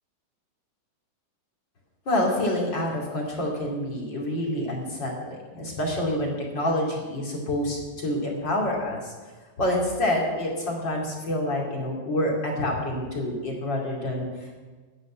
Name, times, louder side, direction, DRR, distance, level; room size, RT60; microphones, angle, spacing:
voice 1, 2.1-9.1 9.6-14.5, left 1 dB, 35° left, -2 dB, 2.9 m, -27 dB
10.0 x 9.6 x 9.9 m, 1.4 s
omnidirectional pair, 3.8 m